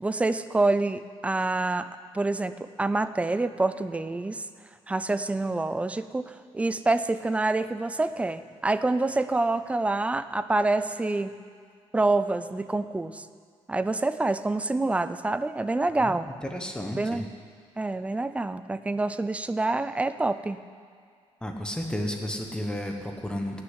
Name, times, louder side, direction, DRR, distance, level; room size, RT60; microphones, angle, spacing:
voice 1, 0.0-4.4 4.9-11.3 11.9-13.3 13.7-16.3 16.9-17.3 17.8-20.6, right 2 dB, 10° right, 12 dB, 0.4 m, -27 dB
voice 2, 16.0-17.2 21.4-23.6, left 1 dB, 5° left, 3 dB, 0.9 m, -32 dB
16.5 x 6.5 x 9.6 m, 2.1 s
cardioid pair, 165°, 12 cm